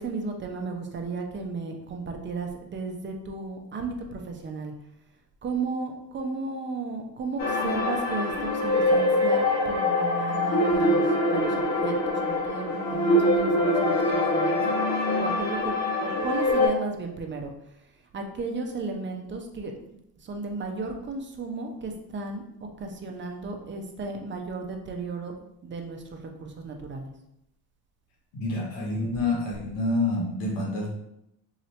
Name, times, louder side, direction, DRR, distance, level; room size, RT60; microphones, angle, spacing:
voice 1, 0.0-4.7 5.4-14.6 15.0-15.7 16.0-17.5 18.1-19.7 20.2-22.4 22.8-27.1, right 3 dB, 25° right, 3 dB, 0.6 m, -34 dB
sound 1, 7.4-16.7, left 1 dB, 65° left, 1.1 m, -24 dB
voice 2, 28.3-30.9, left 2 dB, 80° left, -2 dB, 1.2 m, -27 dB
2.8 x 2.7 x 3.2 m, 0.81 s
supercardioid pair, 80°, 44 cm